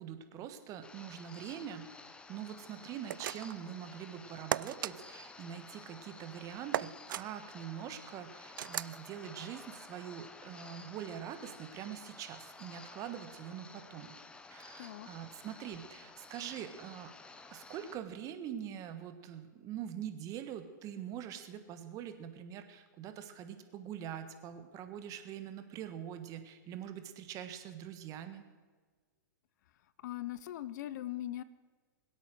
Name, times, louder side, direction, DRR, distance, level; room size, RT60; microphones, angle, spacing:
voice 1, 0.0-1.9 2.3-14.2 14.5-17.1 17.5-28.4, right 9 dB, 30° right, 9 dB, 1.4 m, -44 dB
sound 1, 0.8-18.0, left 3 dB, 10° left, 0.8 m, -53 dB
sound 2, 3.1-3.7 4.5-4.9 6.7-7.3 8.6-9.0, right 12 dB, 80° right, 0.4 m, -35 dB
voice 2, 14.8-15.1 30.0-31.4, left 13 dB, 60° left, 17 dB, 0.7 m, -40 dB
22.0 x 8.3 x 6.3 m, 1.4 s
hypercardioid pair, 140°, 11 cm